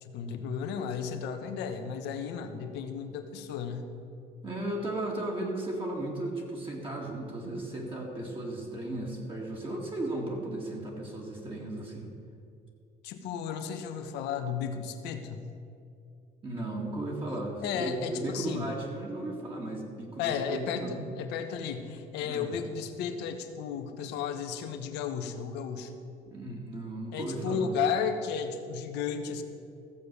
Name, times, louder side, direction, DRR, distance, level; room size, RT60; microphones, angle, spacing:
voice 1, 0.0-3.9 13.0-15.4 17.6-18.7 20.2-26.0 27.1-29.4, left 7 dB, 90° left, 7 dB, 1.1 m, -34 dB
voice 2, 4.4-12.1 16.4-21.0 22.2-22.6 26.3-27.8, right 1 dB, 30° right, -2 dB, 2.1 m, -35 dB
15.0 x 7.1 x 6.8 m, 2.5 s
cardioid pair, 110°, 17 cm